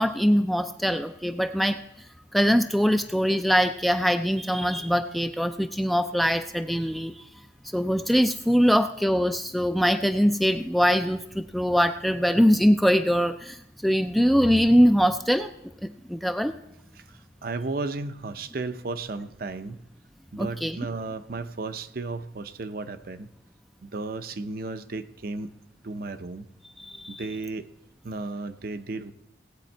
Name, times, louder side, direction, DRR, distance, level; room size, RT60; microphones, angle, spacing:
voice 1, 0.0-1.8 2.3-7.2 7.7-15.5 15.8-16.5 20.4-20.8 26.8-27.2, equal, ahead, 8 dB, 0.3 m, -22 dB
voice 2, 16.9-19.8 20.3-23.3 23.8-25.5 25.8-26.5 27.1-27.7 28.0-29.1, right 3 dB, 50° right, 10 dB, 0.6 m, -34 dB
17.5 x 8.3 x 4.4 m, 0.84 s
head